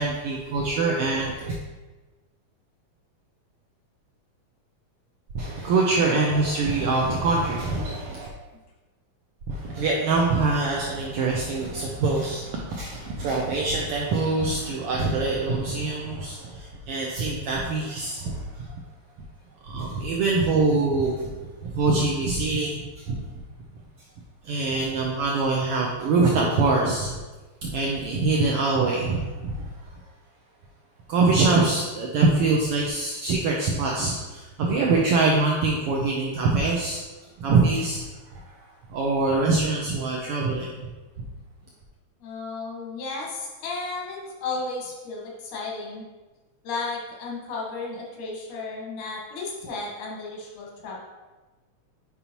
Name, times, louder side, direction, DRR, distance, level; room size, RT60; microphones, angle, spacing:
voice 1, 0.0-1.5 5.3-8.3 9.5-18.7 19.6-23.2 24.4-27.1 27.6-29.9 31.1-37.0 37.4-40.9, right 3 dB, 75° right, -2 dB, 1.3 m, -24 dB
voice 2, 42.2-46.1 46.6-51.0, left 3 dB, 85° left, -3 dB, 2.7 m, -34 dB
8.3 x 5.4 x 2.9 m, 1.2 s
omnidirectional pair, 3.4 m